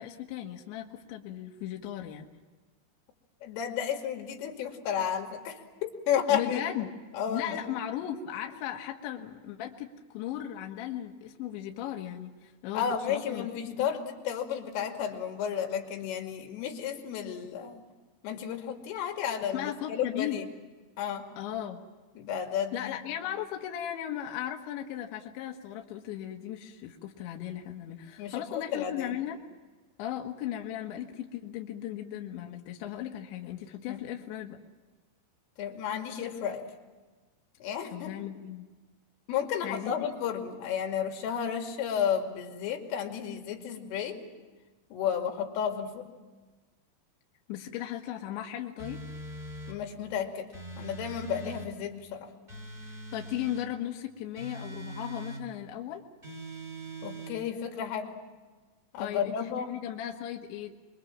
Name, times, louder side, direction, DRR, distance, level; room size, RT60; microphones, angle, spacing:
voice 1, 0.0-2.3 6.3-6.9 7.3-13.5 19.5-20.4 21.4-21.8 22.7-29.4 30.0-34.6 37.9-38.7 39.6-40.1 47.5-49.0 53.1-56.0 59.0-60.8, left 11 dB, 70° left, 2 dB, 3.6 m, -37 dB
voice 2, 3.4-5.6 6.1-6.6 7.1-7.7 12.7-17.8 18.2-20.5 21.0-21.3 22.2-23.0 28.2-29.2 33.9-34.0 35.6-36.7 37.6-38.1 39.3-44.2 44.9-46.1 49.7-52.3 57.0-58.2 58.9-59.7, left 8 dB, 90° left, 3 dB, 5.0 m, -32 dB
sound 1, 48.8-49.8 50.5-51.7 52.5-53.7 54.4-55.4 56.2-57.3, right 1 dB, 10° right, 3.7 m, -42 dB
25.5 x 23.5 x 7.4 m, 1.3 s
omnidirectional pair, 5.6 m